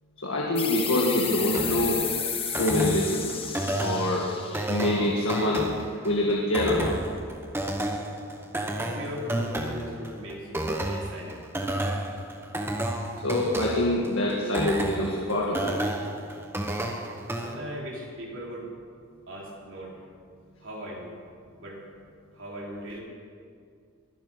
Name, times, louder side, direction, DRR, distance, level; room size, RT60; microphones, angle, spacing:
voice 1, 0.2-2.0 2.6-3.3 3.8-4.3 4.7-5.7 6.0-7.0 13.2-15.8, left 1 dB, 70° left, -2 dB, 1.8 m, -25 dB
sound 1, 0.5-5.8, left 7 dB, 25° left, 1.3 m, -33 dB
sound 2, 1.5-17.5, right 1 dB, 10° right, 1.1 m, -31 dB
voice 2, 8.8-11.4 17.4-18.7 19.3-20.0 20.6-21.1 21.6-21.8 22.3-23.0, equal, 60° right, -3 dB, 4.0 m, -38 dB
22.5 x 11.0 x 5.7 m, 2.2 s
head